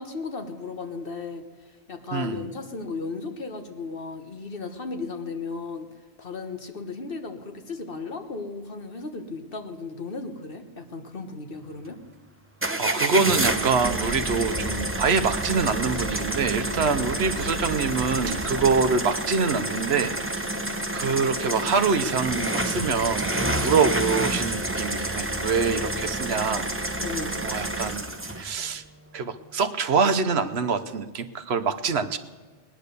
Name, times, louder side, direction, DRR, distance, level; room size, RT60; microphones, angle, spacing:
voice 1, 0.0-1.5 1.9-5.9 6.2-12.0 27.0-27.4, left 4 dB, 50° left, 6 dB, 1.4 m, -35 dB
voice 2, 2.1-2.4 12.7-26.7 27.4-28.8 29.1-32.2, right 5 dB, 65° right, 10 dB, 1.0 m, -25 dB
sound 1, 12.6-28.5, right 1 dB, 10° right, 0.8 m, -29 dB
sound 2, 13.8-19.0, right 1 dB, 30° right, 2.0 m, -37 dB
19.0 x 10.0 x 6.7 m, 1.3 s
omnidirectional pair, 1.2 m